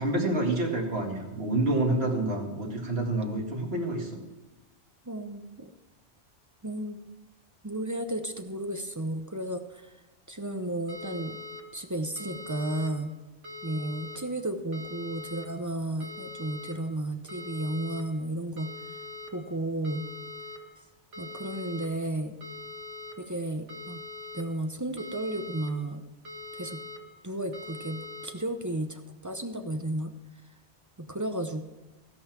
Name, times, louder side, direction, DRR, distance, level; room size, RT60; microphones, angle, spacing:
voice 1, 0.0-4.2, right 2 dB, 60° right, -1 dB, 2.3 m, -28 dB
voice 2, 5.1-5.7 6.6-7.0 7.6-9.9 10.3-11.4 11.7-13.1 13.6-18.7 19.3-20.1 21.2-22.4 23.2-24.0 24.3-26.0 26.5-26.8 27.2-30.1 31.0-31.6, right 1 dB, 20° right, 6 dB, 0.6 m, -33 dB
sound 1, 10.9-11.6 12.2-12.9 13.4-14.2 14.7-15.5 16.0-16.7 17.3-18.0 18.6-19.3 19.8-20.6 21.1-21.9 22.4-23.1 23.7-24.4 25.0-25.7 26.3-27.0 27.5-28.3, left 2 dB, 90° right, 1.9 m, -42 dB
16.0 x 5.6 x 6.0 m, 1.1 s
omnidirectional pair, 1.2 m